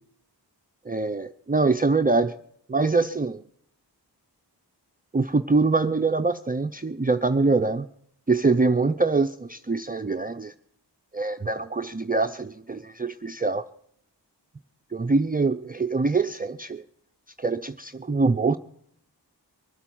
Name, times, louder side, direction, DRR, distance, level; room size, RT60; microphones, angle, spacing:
voice 1, 0.9-2.4 2.7-3.4 5.1-7.9 8.3-10.5 11.1-13.7 14.9-16.8 17.4-18.6, right 3 dB, 20° right, 8 dB, 0.5 m, -24 dB
23.5 x 8.2 x 6.1 m, 0.69 s
wide cardioid pair, 50°, 42 cm